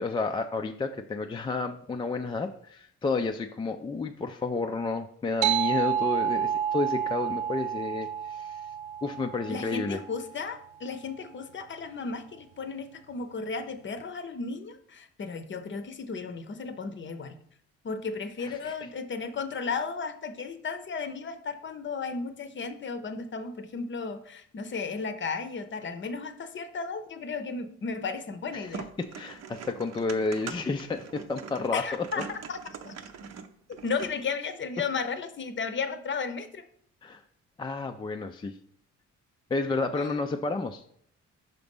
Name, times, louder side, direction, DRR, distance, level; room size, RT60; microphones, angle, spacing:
voice 1, 0.0-8.6 9.0-10.0 18.4-18.7 28.5-28.7 29.0-32.1 37.0-37.2 37.6-38.5 39.5-40.9, left 3 dB, 15° left, 5 dB, 0.3 m, -31 dB
sound 1, 5.4-10.4, right 9 dB, 90° right, 0.5 m, -30 dB
voice 2, 9.5-17.4 17.8-28.9 31.7-32.6 32.9-33.0 33.8-36.7 39.9-40.2, left 4 dB, 40° left, 10 dB, 0.7 m, -34 dB
sound 2, 28.6-34.3, right 6 dB, 60° right, 0.7 m, -43 dB
5.8 x 3.9 x 5.3 m, 0.66 s
cardioid pair, 90°, 30 cm